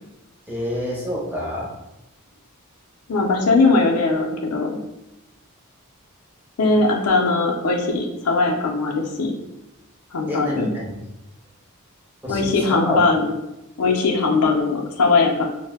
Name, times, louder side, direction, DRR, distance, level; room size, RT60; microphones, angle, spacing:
voice 1, 0.5-1.7 10.3-11.0 12.2-13.0, left 1 dB, 10° right, -5 dB, 0.6 m, -28 dB
voice 2, 3.1-4.8 6.6-9.3 10.1-10.7 12.3-13.3 13.8-15.5, left 3 dB, 80° left, 2 dB, 0.5 m, -20 dB
2.6 x 2.0 x 3.4 m, 0.92 s
head